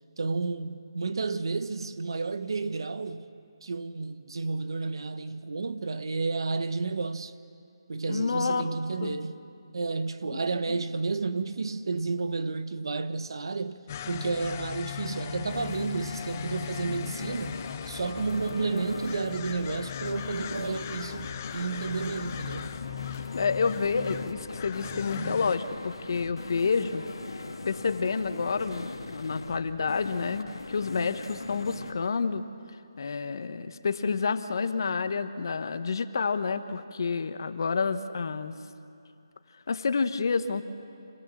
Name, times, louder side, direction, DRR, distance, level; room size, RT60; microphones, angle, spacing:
voice 1, 0.2-3.3 3.6-7.3 7.9-9.4 9.7-13.8 14.1-17.6 17.9-22.8, right 4 dB, 65° right, 1.0 m, -31 dB
voice 2, 8.1-9.2 10.3-10.4 10.7-10.8 23.3-27.1 27.6-32.5 33.0-38.5 39.7-40.6, left 5 dB, 55° left, 1.1 m, -29 dB
sound 1, 13.9-25.6, left 10 dB, 30° left, 0.5 m, -39 dB
sound 2, 15.5-31.9, left 3 dB, 75° left, 1.9 m, -40 dB
26.5 x 17.0 x 7.4 m
figure-of-eight pair, 160°, 3 cm